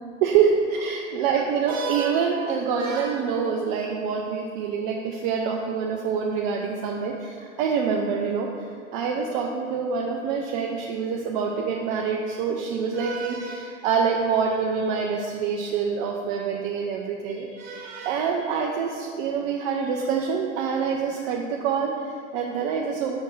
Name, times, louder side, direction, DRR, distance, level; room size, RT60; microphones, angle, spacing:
voice 1, 0.2-8.7 8.9-23.2, right 6 dB, 35° right, 0 dB, 0.5 m, -26 dB
5.1 x 4.5 x 6.2 m, 2.4 s
hypercardioid pair, 110°, 40 cm